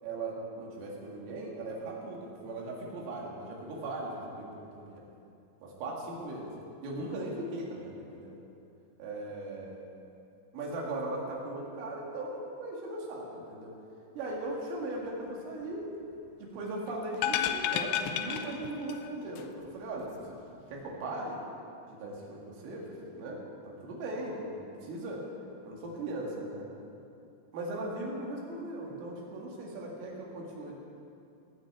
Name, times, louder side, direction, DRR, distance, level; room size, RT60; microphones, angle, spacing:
voice 1, 0.0-5.1 5.6-6.5 6.8-8.4 9.0-9.8 10.5-13.8 14.2-15.8 16.4-20.4 20.7-21.4 21.9-23.4 23.6-25.2 25.6-26.7 27.5-30.8, right 2 dB, 80° right, -2 dB, 4.6 m, -38 dB
sound 1, 17.1-19.1 19.4-19.5, left 9 dB, 85° left, 2.5 m, -31 dB
18.5 x 6.2 x 8.6 m, 2.7 s
omnidirectional pair, 5.8 m